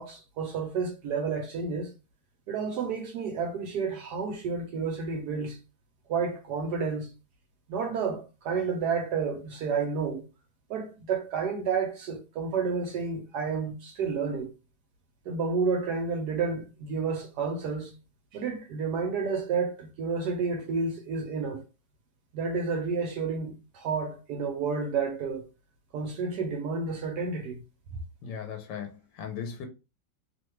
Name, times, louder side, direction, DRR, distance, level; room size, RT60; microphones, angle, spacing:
voice 1, 0.0-1.9 2.5-5.6 6.1-7.1 7.7-10.2 10.7-14.5 15.3-17.9 18.3-21.6 22.3-25.5 25.9-27.6, right 5 dB, 75° right, 1.1 m, -30 dB
voice 2, 28.2-29.7, left 7 dB, 85° left, 1.3 m, -37 dB
3.0 x 2.2 x 3.0 m
omnidirectional pair, 1.9 m